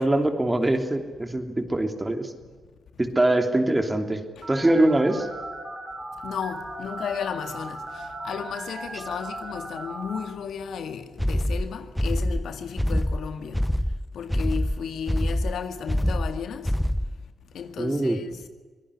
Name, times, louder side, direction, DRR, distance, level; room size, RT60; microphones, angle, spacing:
voice 1, 0.0-2.3 3.0-4.2 4.5-5.3 17.8-18.2, right 1 dB, 20° right, 3.0 m, -23 dB
Telephone, 4.4-10.2, right 1 dB, 35° right, 6.4 m, -37 dB
voice 2, 6.2-13.6 14.1-16.7 17.5-18.4, left 7 dB, 80° left, 2.0 m, -34 dB
sound 1, 11.2-17.3, equal, 5° left, 0.8 m, -25 dB
24.5 x 18.0 x 9.9 m
cardioid pair, 85°, 0 cm